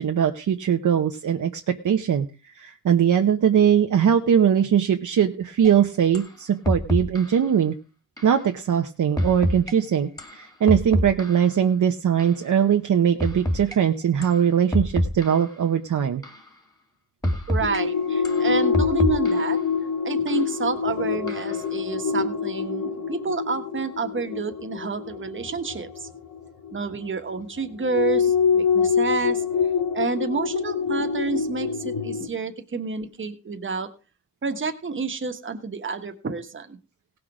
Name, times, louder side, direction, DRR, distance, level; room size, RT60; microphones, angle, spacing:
voice 1, 0.0-2.3 2.6-7.7 8.2-16.2, right 8 dB, 55° right, 4 dB, 0.9 m, -21 dB
sound 1, 5.6-5.7 6.1-6.3 6.6-7.4 8.2-8.4 9.2-9.7 10.2-11.6 12.2-12.4 13.2-13.8 14.2-14.4 14.7-15.6 16.2-16.5 17.2-17.8 18.2-19.6 20.3-20.4 21.3-21.6, equal, 10° left, 2.2 m, -27 dB
voice 2, 17.5-19.6 20.0-26.1 26.7-29.4 29.9-33.9 34.4-36.8, right 4 dB, 35° right, 6 dB, 1.4 m, -29 dB
sound 2, 17.6-26.8 27.8-32.3, left 6 dB, 70° left, 2.2 m, -25 dB
18.0 x 6.2 x 4.9 m, 0.33 s
wide cardioid pair, 160°, 35 cm